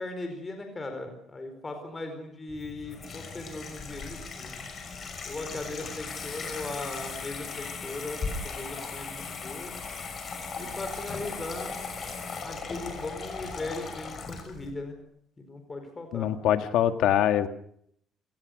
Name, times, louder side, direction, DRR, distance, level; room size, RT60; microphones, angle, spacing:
voice 1, 0.0-4.5 5.2-9.7 10.6-11.8 12.4-15.0 15.4-16.3, left 2 dB, 20° left, 5 dB, 4.5 m, -38 dB
Water tap faucet / Sink (filling or washing), 2.5-14.7, left 4 dB, 35° left, 6.1 m, -38 dB
voice 2, 16.1-17.5, left 11 dB, 75° left, 8 dB, 1.8 m, -23 dB
29.5 x 19.0 x 6.5 m, 0.69 s
cardioid pair, 140°, 0 cm